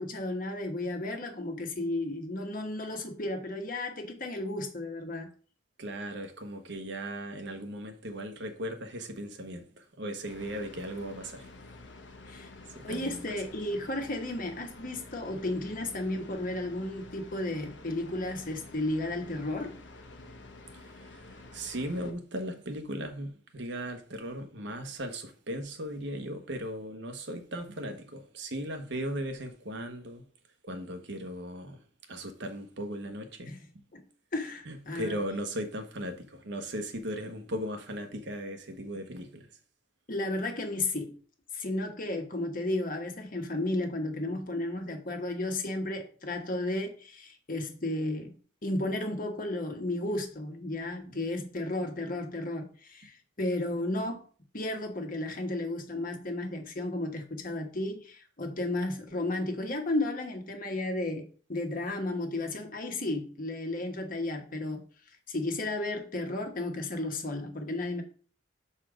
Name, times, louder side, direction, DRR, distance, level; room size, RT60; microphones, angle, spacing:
voice 1, 0.0-5.3 12.3-12.5 12.8-19.8 33.5-33.6 33.9-34.0 34.3-35.2 40.1-41.1 41.5-48.3 48.6-54.2 54.5-64.8 65.3-68.0, left 2 dB, 50° left, 1.3 m, -33 dB
voice 2, 5.8-11.5 12.7-13.2 20.7-30.2 30.6-33.5 34.7-39.5 51.1-51.2, equal, 70° right, 1.1 m, -37 dB
sound 1, 10.2-22.1, left 2 dB, 70° left, 1.0 m, -49 dB
6.3 x 4.2 x 5.0 m
head